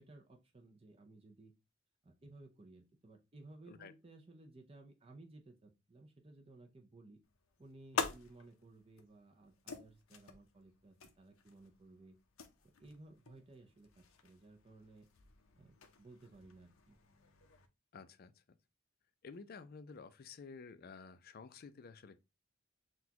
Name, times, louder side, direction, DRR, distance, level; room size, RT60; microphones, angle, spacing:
voice 1, 0.0-1.5 2.0-7.2 7.6-12.2 12.8-15.1 15.6-17.0, right 2 dB, 30° right, 0.5 m, -58 dB
sound 1, 7.2-17.7, left 5 dB, 85° left, 0.7 m, -47 dB
voice 2, 17.9-18.6 19.2-22.2, left 5 dB, 45° left, 0.4 m, -52 dB
6.0 x 2.3 x 2.8 m
head